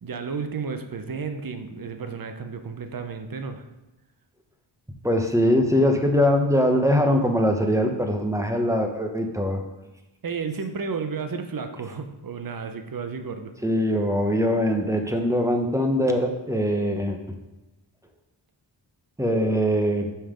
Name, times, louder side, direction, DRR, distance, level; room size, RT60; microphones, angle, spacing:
voice 1, 0.0-3.7 10.2-13.5, right 5 dB, 50° right, 7 dB, 0.8 m, -32 dB
voice 2, 5.0-9.6 13.6-17.2 19.2-20.1, equal, 5° right, 4 dB, 0.9 m, -22 dB
5.5 x 5.5 x 5.0 m, 1.0 s
wide cardioid pair, 60°, 45 cm